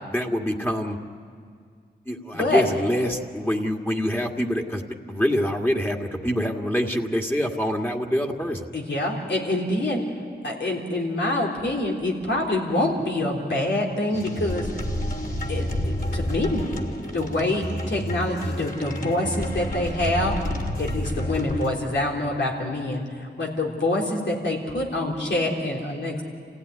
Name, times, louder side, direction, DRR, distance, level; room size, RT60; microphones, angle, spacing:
voice 1, 0.1-1.0 2.1-8.7, equal, 10° left, 1 dB, 2.0 m, -25 dB
voice 2, 2.3-2.6 8.7-10.0 10.4-14.7 15.5-16.6 17.1-20.4 20.8-26.2, left 1 dB, 85° left, -2 dB, 3.7 m, -26 dB
sound 1, 14.1-21.7, equal, 50° left, 3.2 m, -29 dB
27.5 x 16.0 x 9.7 m, 2.1 s
cardioid pair, 50°, 18 cm